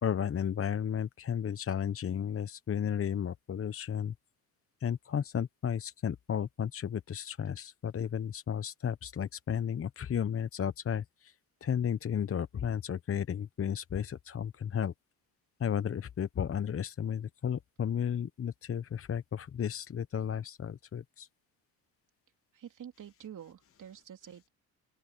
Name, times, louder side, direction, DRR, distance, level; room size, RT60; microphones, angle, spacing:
voice 1, 0.0-4.1 4.8-11.3 11.6-14.9 15.6-21.3, left 8 dB, 35° left, 1.0 m, -33 dB
voice 2, 22.5-24.5, right 9 dB, 50° right, 3.0 m, -48 dB
open air
supercardioid pair, 70°, 40 cm